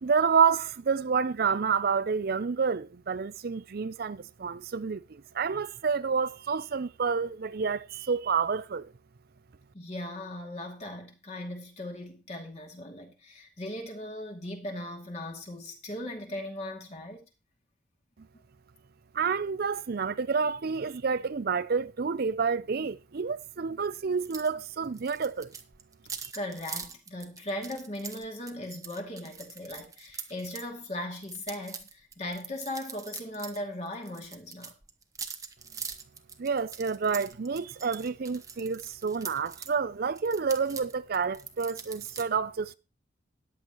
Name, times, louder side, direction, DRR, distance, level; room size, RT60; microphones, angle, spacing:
voice 1, 0.0-8.9 19.1-25.5 36.4-42.8, right 5 dB, 50° right, 0.5 m, -29 dB
voice 2, 9.7-17.3 26.3-34.7, left 1 dB, 35° left, 2.6 m, -38 dB
sound 1, 24.3-24.5 24.8-30.7 31.1-33.6 33.9-39.7 40.2-42.2, right 6 dB, 20° right, 1.0 m, -43 dB
14.0 x 10.0 x 3.0 m
head